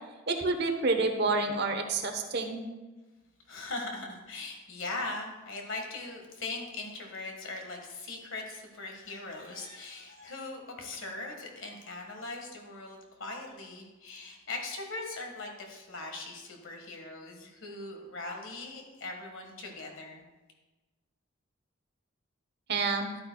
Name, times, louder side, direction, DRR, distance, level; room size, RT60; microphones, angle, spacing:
voice 1, 0.3-2.6 22.7-23.1, right 3 dB, 50° right, 5 dB, 0.9 m, -28 dB
voice 2, 3.5-20.2, left 2 dB, 65° left, 2 dB, 1.6 m, -40 dB
12.0 x 8.6 x 2.3 m, 1.2 s
head